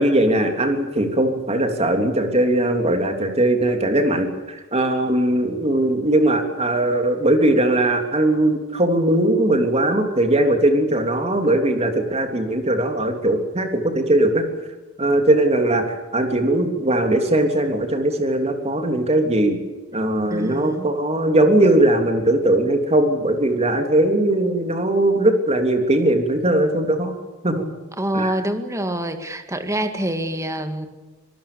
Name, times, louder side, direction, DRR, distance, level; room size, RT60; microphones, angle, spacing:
voice 1, 0.0-14.4 15.0-19.6 19.9-27.1 27.4-27.7 28.1-28.3, right 1 dB, 30° right, 5 dB, 3.2 m, -19 dB
voice 2, 20.3-20.9 28.0-30.9, right 1 dB, 15° right, 8 dB, 2.1 m, -26 dB
25.5 x 19.0 x 7.0 m, 1.2 s
head